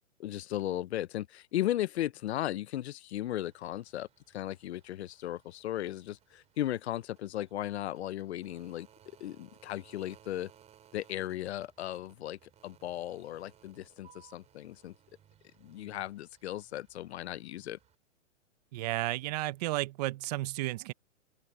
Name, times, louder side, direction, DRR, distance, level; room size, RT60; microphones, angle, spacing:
voice 1, 0.2-8.9 9.2-10.5 10.9-14.9 15.6-17.8, left 13 dB, 60° left, 0.7 m, -36 dB
sound 1, 3.2-17.9, right 10 dB, 15° right, 4.2 m, -63 dB
voice 2, 18.7-20.9, right 18 dB, 35° right, 0.8 m, -33 dB
open air
hypercardioid pair, 155°, 37 cm